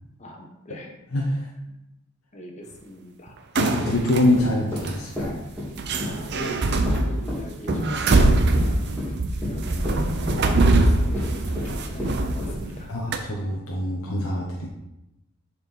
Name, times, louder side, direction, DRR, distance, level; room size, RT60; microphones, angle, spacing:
voice 1, 0.2-0.9 2.3-3.3 6.0-6.6 6.8-12.9, equal, 30° left, 2 dB, 1.1 m, -40 dB
voice 2, 1.1-1.5 3.5-5.5 12.9-14.7, left 1 dB, 90° left, -2 dB, 1.1 m, -24 dB
sound 1, 3.5-4.3 4.8-4.9 5.8-12.8 13.1-13.2, right 2 dB, 50° right, 0.6 m, -23 dB
sound 2, 3.8-12.8, left 1 dB, 10° left, 2.7 m, -32 dB
6.8 x 4.5 x 4.4 m, 0.89 s
head